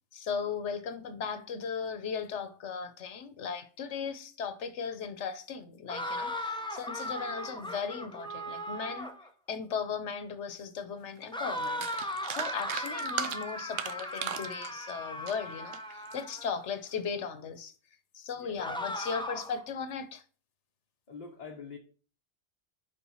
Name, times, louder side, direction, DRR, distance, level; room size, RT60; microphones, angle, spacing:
voice 1, 0.1-9.1 9.5-17.7 18.1-20.2, left 6 dB, 80° left, 1.3 m, -37 dB
sound 1, 5.9-9.3 11.3-16.6 18.6-19.6, left 1 dB, 5° left, 0.8 m, -37 dB
sound 2, 11.2-11.3 11.6-16.2 16.7-17.0, right 9 dB, 65° right, 0.8 m, -38 dB
voice 2, 21.1-21.8, left 5 dB, 40° left, 1.1 m, -44 dB
7.1 x 5.3 x 5.5 m
omnidirectional pair, 1.2 m